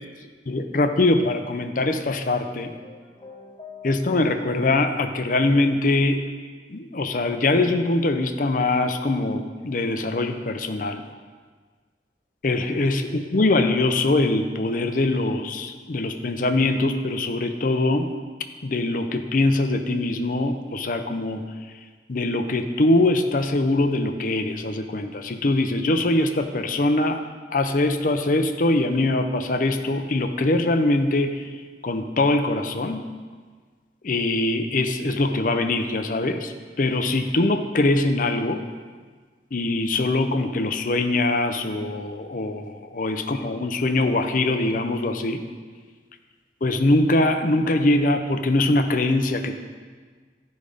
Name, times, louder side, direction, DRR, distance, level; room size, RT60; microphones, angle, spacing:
voice 1, 0.5-2.7 3.8-6.2 6.7-11.0 12.4-18.1 18.6-21.4 22.1-27.2 27.5-31.4 31.8-33.0 34.0-38.6 39.5-45.4 46.6-49.6, left 2 dB, 50° left, 7 dB, 0.6 m, -22 dB
sound 1, 2.4-4.5, left 4 dB, 25° left, 0.9 m, -45 dB
12.0 x 5.3 x 5.0 m, 1.5 s
head